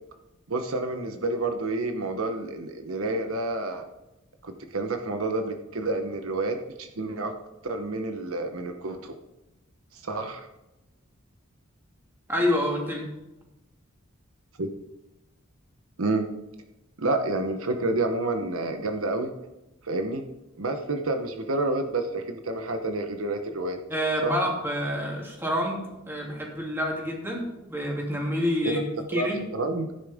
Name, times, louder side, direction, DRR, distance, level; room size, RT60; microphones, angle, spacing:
voice 1, 0.5-3.9 4.4-7.3 7.6-9.1 9.9-10.4 14.6-14.7 16.0-16.3 17.0-19.3 19.8-20.2 20.6-23.8 24.2-24.3 28.6-28.8 29.1-29.9, right 2 dB, 80° right, 6 dB, 1.0 m, -29 dB
voice 2, 12.3-13.1 23.9-27.4 27.7-28.8 29.1-29.4, equal, 10° right, -1 dB, 2.7 m, -27 dB
15.0 x 9.8 x 3.6 m, 0.97 s
head